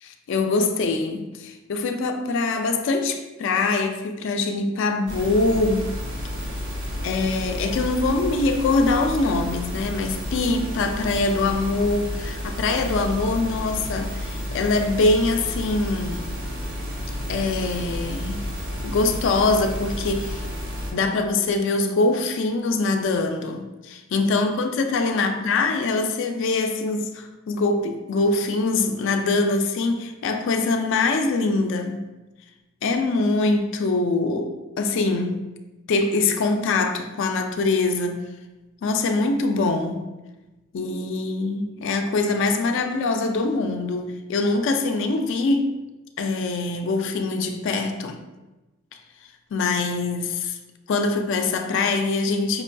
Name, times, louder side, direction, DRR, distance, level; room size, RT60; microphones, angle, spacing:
voice 1, 0.0-5.9 7.0-16.2 17.3-18.4 18.8-20.5 20.9-32.0 32.8-35.5 35.9-38.2 38.8-40.0 40.7-45.7 46.2-48.2 49.5-50.5 50.9-52.6, left 3 dB, 60° left, 5 dB, 0.3 m, -23 dB
sound 1, 5.1-20.9, left 1 dB, 55° right, 0.8 m, -31 dB
5.1 x 2.6 x 2.2 m, 1.1 s
head